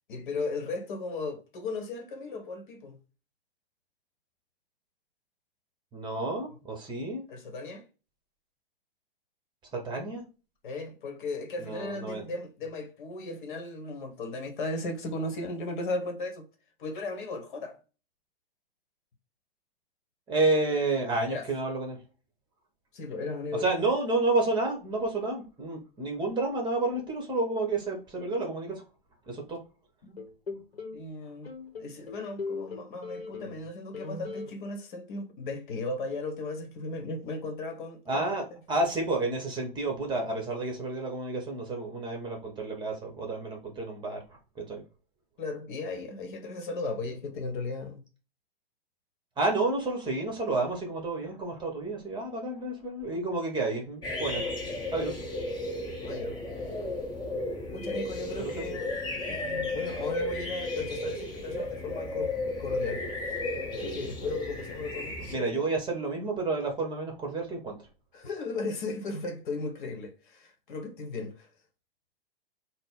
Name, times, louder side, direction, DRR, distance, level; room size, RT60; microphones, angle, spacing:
voice 1, 0.1-3.0 7.3-7.8 10.6-16.5 16.8-17.8 21.3-21.5 22.9-23.7 30.0-30.2 30.9-38.2 45.4-48.0 56.0-56.4 57.7-59.0 59.3-63.0 63.3-63.4 63.7-65.7 68.1-71.5, left 2 dB, 55° left, 1.0 m, -36 dB
voice 2, 5.9-7.2 9.7-10.2 11.6-12.3 20.3-22.0 23.5-28.8 29.3-29.6 38.1-44.2 44.5-44.8 49.4-54.5 54.9-55.2 58.4-58.6 65.3-67.8, right 2 dB, 15° right, 1.0 m, -30 dB
sound 1, 30.2-31.0 31.4-33.7 33.9-34.5, left 4 dB, 80° left, 0.8 m, -38 dB
sound 2, 54.0-65.3, left 2 dB, 15° left, 0.8 m, -34 dB
4.0 x 2.0 x 3.6 m
figure-of-eight pair, 105°, 30 cm